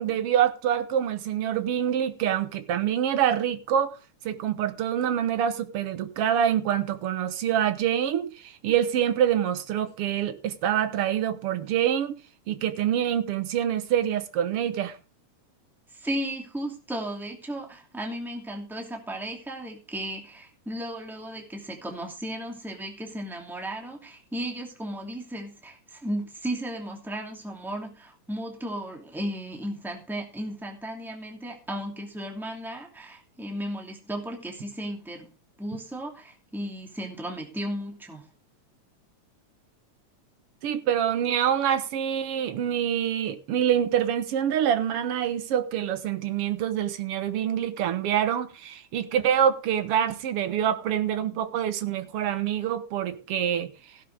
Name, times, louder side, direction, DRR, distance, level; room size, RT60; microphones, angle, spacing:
voice 1, 0.0-4.0 4.2-12.2 12.5-14.9 40.6-53.7, right 9 dB, 60° right, 1.9 m, -26 dB
voice 2, 15.9-35.3 35.6-38.2, right 1 dB, ahead, 2.3 m, -35 dB
16.0 x 11.5 x 3.5 m
omnidirectional pair, 3.4 m